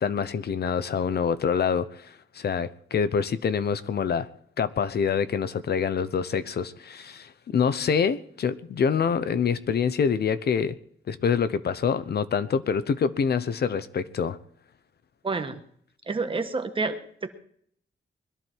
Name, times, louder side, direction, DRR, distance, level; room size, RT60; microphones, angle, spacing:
voice 1, 0.0-4.3 4.6-10.8 11.1-14.4, left 6 dB, 55° left, 13 dB, 0.9 m, -26 dB
voice 2, 15.2-15.6 16.1-17.0 17.2-17.3, right 3 dB, 25° right, 8 dB, 1.4 m, -28 dB
21.5 x 13.0 x 4.6 m, 0.64 s
wide cardioid pair, 165°, 20 cm